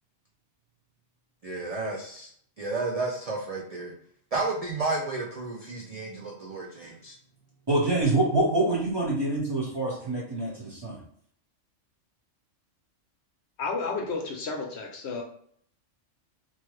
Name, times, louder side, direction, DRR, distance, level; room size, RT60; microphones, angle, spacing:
voice 1, 1.4-2.3 2.6-3.9 4.3-7.2, right 3 dB, 60° right, -1 dB, 0.4 m, -32 dB
voice 2, 7.7-11.0, right 2 dB, 20° right, -5 dB, 0.9 m, -26 dB
voice 3, 13.6-15.2, left 4 dB, 65° left, 0 dB, 0.9 m, -32 dB
3.1 x 2.2 x 3.1 m, 0.62 s
omnidirectional pair, 1.3 m